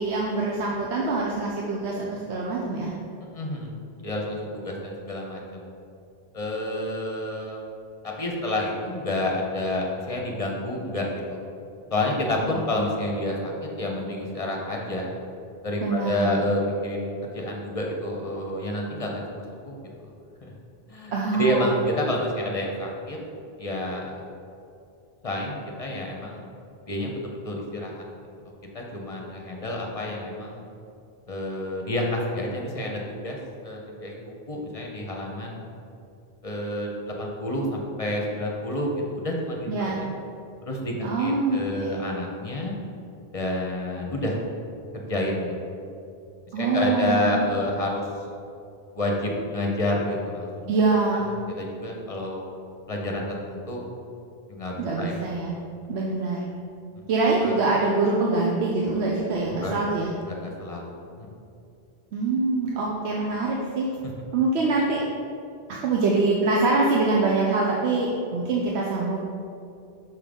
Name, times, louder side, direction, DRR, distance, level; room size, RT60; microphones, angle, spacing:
voice 1, 0.0-2.9 12.5-12.6 15.8-16.4 21.1-21.7 39.7-40.0 41.0-42.0 46.5-47.6 50.7-51.3 54.8-55.6 55.9-56.5 57.1-60.1 62.1-63.9 64.3-65.0 65.7-69.2, right 3 dB, 80° right, -3 dB, 0.9 m, -24 dB
voice 2, 3.2-3.7 4.0-5.7 6.3-7.7 8.0-11.4 11.9-13.5 13.8-15.1 15.6-20.1 20.4-20.5 20.9-21.1 21.4-23.2 23.6-24.1 25.2-26.4 26.9-28.0 28.7-30.6 31.3-33.4 33.6-35.6 36.4-40.1 40.6-42.7 43.3-44.4 44.9-45.5 46.6-48.1 48.9-50.7 51.5-52.4 52.9-53.8 54.5-55.2 57.4-57.5 59.6-59.7 60.3-60.9 61.2-61.3, left 1 dB, 35° left, -1 dB, 0.8 m, -29 dB
6.1 x 3.7 x 5.2 m, 2.5 s
omnidirectional pair, 1.1 m